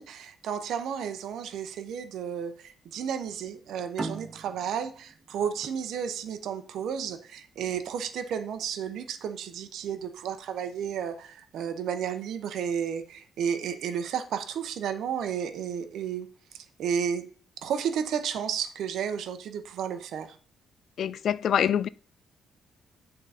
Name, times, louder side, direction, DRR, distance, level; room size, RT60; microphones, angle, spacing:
voice 1, 0.0-16.3 16.5-17.3 17.6-20.4, right 8 dB, 70° right, 0.8 m, -32 dB
sound 1, 4.0-7.2, right 3 dB, 25° right, 0.8 m, -39 dB
voice 2, 21.0-21.9, left 9 dB, 60° left, 0.3 m, -25 dB
9.1 x 3.8 x 4.2 m
cardioid pair, 140°, 0 cm